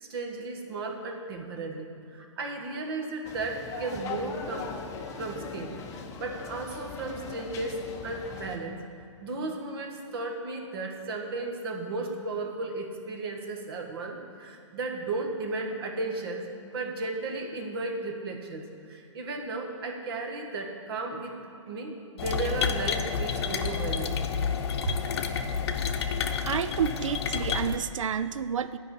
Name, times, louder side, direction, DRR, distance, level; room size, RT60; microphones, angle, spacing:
voice 1, 0.0-4.7 5.2-8.8 9.2-21.4 21.7-24.2, right 3 dB, 50° right, 3 dB, 1.6 m, -35 dB
sound 1, 3.2-8.6, left 5 dB, 20° left, 0.7 m, -40 dB
sound 2, 22.2-27.8, left 6 dB, 55° left, 0.8 m, -29 dB
voice 2, 26.4-28.8, right 8 dB, 80° right, 14 dB, 0.4 m, -29 dB
10.5 x 5.6 x 8.3 m, 2.6 s
hypercardioid pair, 140°, 16 cm